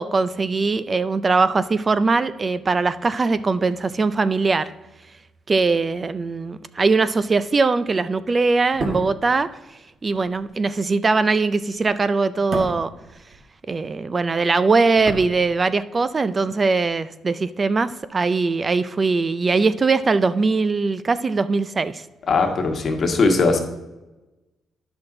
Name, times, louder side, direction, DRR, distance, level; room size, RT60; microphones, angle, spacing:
voice 1, 0.0-4.7 5.5-9.5 10.0-12.9 13.7-22.0, right 4 dB, 30° right, 14 dB, 0.4 m, -21 dB
sound 1, 8.6-13.9 14.2-16.0 16.3-16.5, right 2 dB, 45° right, 1.7 m, -34 dB
voice 2, 22.3-23.6, left 3 dB, 40° left, 3 dB, 1.3 m, -19 dB
10.5 x 6.1 x 3.8 m, 1.1 s
cardioid pair, 125°, 0 cm